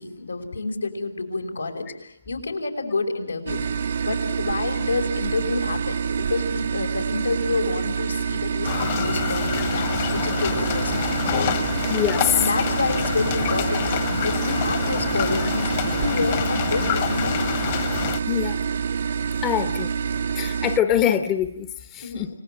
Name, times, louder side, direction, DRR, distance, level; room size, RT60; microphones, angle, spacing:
voice 1, 0.0-3.6 4.0-11.5 12.3-13.9 14.2-15.7 16.0-17.6 22.0-22.3, left 3 dB, 80° left, 3 dB, 5.7 m, -28 dB
sound 1, 3.5-20.8, right 6 dB, 50° right, 0.9 m, -27 dB
sound 2, 8.6-18.2, left 11 dB, 35° left, 1.6 m, -27 dB
voice 2, 11.9-12.4 18.2-18.6 19.4-19.9 20.3-22.3, left 10 dB, 15° left, 9 dB, 1.1 m, -24 dB
29.5 x 18.5 x 9.0 m, 0.75 s
hypercardioid pair, 155°, 0 cm